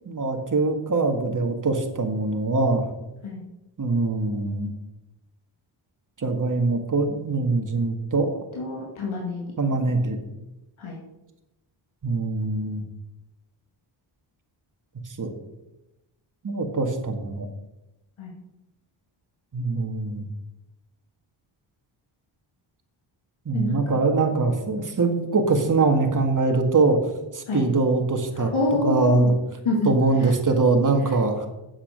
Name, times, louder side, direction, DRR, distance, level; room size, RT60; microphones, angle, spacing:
voice 1, 0.1-2.8 3.8-4.7 6.2-8.3 9.6-10.2 12.0-12.8 15.2-15.3 16.4-17.5 19.5-20.2 23.5-27.0 27.3-28.5 28.8-29.3 29.9-31.5, right 3 dB, 40° right, 4 dB, 1.9 m, -23 dB
voice 2, 8.6-9.4 10.8-11.0 18.2-18.3 23.5-24.0 27.5-27.7 28.4-29.3 29.6-29.9 30.2-30.3, left 2 dB, 80° left, -2 dB, 2.5 m, -27 dB
8.7 x 7.3 x 6.7 m, 0.97 s
cardioid pair, 85°, 48 cm